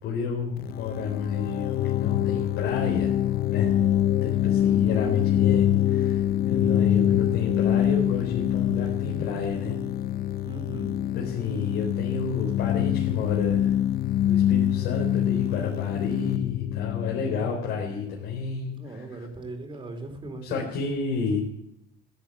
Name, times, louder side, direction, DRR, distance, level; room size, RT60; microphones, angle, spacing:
voice 1, 0.0-3.1 3.5-3.7 4.2-9.7 11.1-13.7 14.2-19.0 20.4-21.4, left 5 dB, 80° left, -2 dB, 4.1 m, -30 dB
sound 1, 0.6-18.2, left 12 dB, 65° left, 0.6 m, -25 dB
voice 2, 4.5-5.3 10.4-10.9 18.8-20.7, right 1 dB, 30° right, 5 dB, 4.2 m, -37 dB
16.0 x 10.5 x 8.7 m, 0.82 s
cardioid pair, 110°, 17 cm